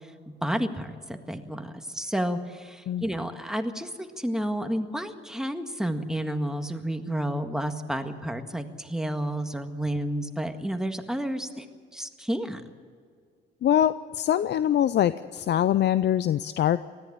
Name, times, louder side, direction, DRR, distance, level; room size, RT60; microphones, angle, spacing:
voice 1, 0.4-11.7 11.9-12.6, equal, 5° right, 6 dB, 1.8 m, -31 dB
voice 2, 13.6-16.8, left 11 dB, 60° left, 14 dB, 0.6 m, -23 dB
19.5 x 14.5 x 9.8 m, 2.1 s
cardioid pair, 90°, 20 cm